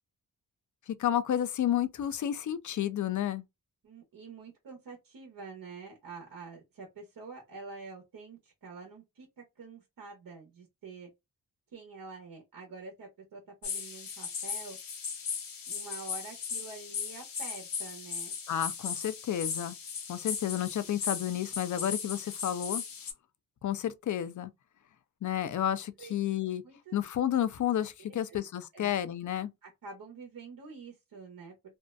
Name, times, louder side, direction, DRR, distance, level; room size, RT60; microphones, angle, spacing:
voice 1, 0.9-3.4 18.5-19.8 20.1-22.8 23.6-24.5 25.2-26.6 26.9-29.5, left 10 dB, 60° left, 0.5 m, -31 dB
voice 2, 3.8-9.3 9.6-11.1 11.7-14.8 15.7-18.4 26.0-26.1 26.6-27.0 28.1-28.4 28.7-28.9 29.6-31.8, right 4 dB, 80° right, 1.0 m, -47 dB
sound 1, 13.6-23.1, left 6 dB, 80° left, 0.8 m, -37 dB
2.6 x 2.1 x 2.4 m
cardioid pair, 65°, 34 cm